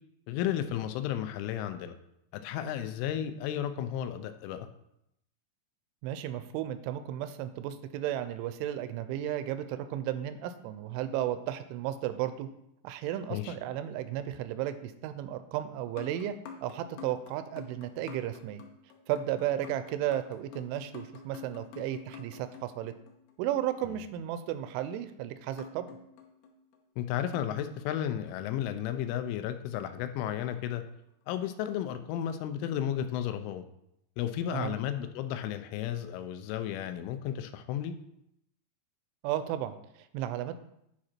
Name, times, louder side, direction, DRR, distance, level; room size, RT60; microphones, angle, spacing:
voice 1, 0.3-2.0 2.3-4.7 13.3-13.5 27.0-30.8 31.3-33.6 34.2-37.9, left 10 dB, 90° left, 9 dB, 3.1 m, -33 dB
voice 2, 6.0-12.5 12.8-16.4 16.6-18.6 19.1-22.9 23.4-25.9 34.5-34.7 39.2-40.5, right 12 dB, 85° right, 11 dB, 3.0 m, -34 dB
sound 1, 15.9-23.5 25.6-28.5 29.8-30.8 31.4-31.7 32.2-32.3, left 6 dB, 75° left, 2.9 m, -50 dB
9.5 x 4.9 x 4.3 m, 0.78 s
omnidirectional pair, 5.5 m